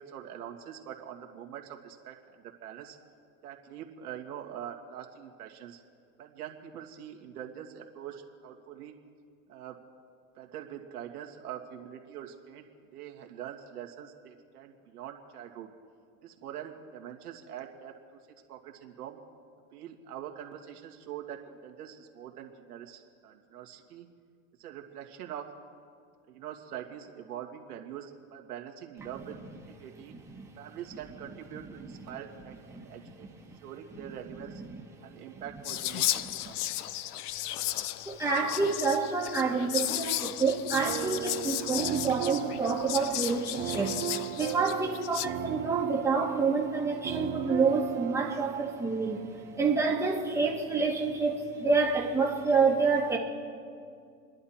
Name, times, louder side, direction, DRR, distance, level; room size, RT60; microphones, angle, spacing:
voice 1, 0.0-2.2 2.6-3.0 3.4-5.8 6.2-8.9 9.5-9.8 10.4-12.6 12.9-15.7 16.2-17.9 18.5-19.2 19.7-24.1 24.6-25.5 26.3-29.4 29.8-30.1 30.6-33.3 33.6-34.5 35.0-36.6, right 10 dB, 90° right, 2 dB, 2.2 m, -44 dB
voice 2, 30.1-30.5 31.8-32.0 32.7-33.6 33.9-34.2 34.5-34.8 36.2-36.5 38.1-44.0 44.4-49.2 49.5-53.2, right 4 dB, 5° right, -2 dB, 2.1 m, -28 dB
Whispering, 35.6-45.3, left 14 dB, 85° left, 0.7 m, -34 dB
sound 1, 40.7-50.9, right 15 dB, 25° right, 0.5 m, -37 dB
29.5 x 11.0 x 4.4 m, 2.3 s
supercardioid pair, 125°, 44 cm